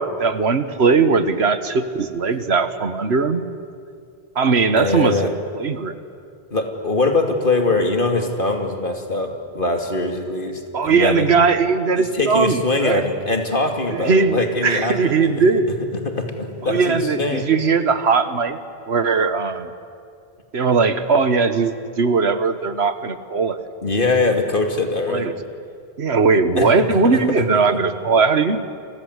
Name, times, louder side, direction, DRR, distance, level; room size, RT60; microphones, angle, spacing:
voice 1, 0.0-3.4 4.3-5.2 5.5-5.9 10.7-13.0 13.9-15.7 16.6-18.6 18.9-19.7 20.5-23.6 25.1-25.3 26.0-28.6, right 4 dB, 80° right, 11 dB, 1.6 m, -19 dB
voice 2, 4.7-5.3 6.5-9.3 9.5-11.2 12.0-15.3 16.0-17.4 23.8-25.3 26.6-27.8, left 2 dB, 55° left, 4 dB, 2.8 m, -22 dB
29.5 x 24.5 x 8.1 m, 2.4 s
omnidirectional pair, 1.1 m